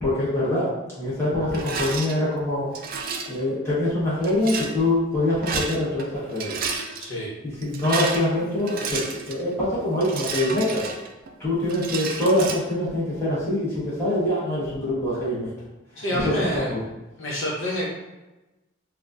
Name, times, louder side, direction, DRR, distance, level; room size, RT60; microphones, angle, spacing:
voice 1, 0.0-0.7 1.0-2.7 3.3-6.6 7.4-9.0 9.3-10.9 11.4-15.5 15.9-16.8, left 1 dB, 15° left, -11 dB, 1.3 m, -24 dB
Rattle, 1.5-2.1 2.7-3.4 4.2-4.7 5.3-6.0 6.3-7.1 7.6-9.4 10.0-11.3 11.7-12.6, right 5 dB, 45° right, 0.4 m, -31 dB
voice 2, 7.0-7.3 16.0-16.7 17.2-17.8, equal, 75° left, -6 dB, 1.0 m, -27 dB
4.2 x 2.3 x 2.5 m, 1.1 s
head